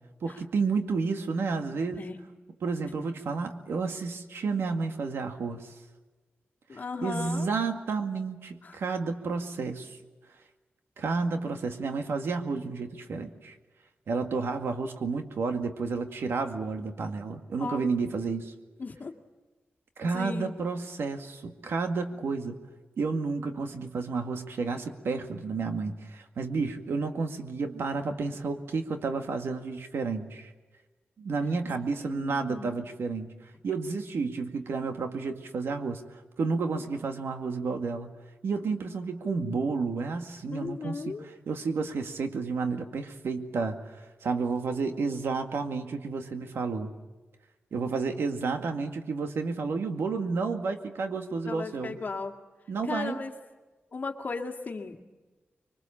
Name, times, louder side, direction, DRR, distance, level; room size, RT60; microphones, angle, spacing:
voice 1, 0.2-2.1 2.6-5.7 6.7-10.0 11.0-13.6 14.1-18.5 20.0-22.6 23.0-30.5 31.2-33.3 33.6-38.1 38.4-41.1 41.5-46.9 47.7-52.0 52.7-53.2, right 4 dB, 80° right, 5 dB, 2.1 m, -31 dB
voice 2, 2.0-2.3 6.7-7.5 8.6-8.8 17.6-17.8 18.8-19.1 20.0-20.5 32.0-32.8 40.5-41.3 51.4-52.4 52.9-53.3 53.9-55.1, left 4 dB, 45° left, 4 dB, 2.2 m, -36 dB
25.5 x 23.0 x 7.4 m, 1.2 s
wide cardioid pair, 135°, 4 cm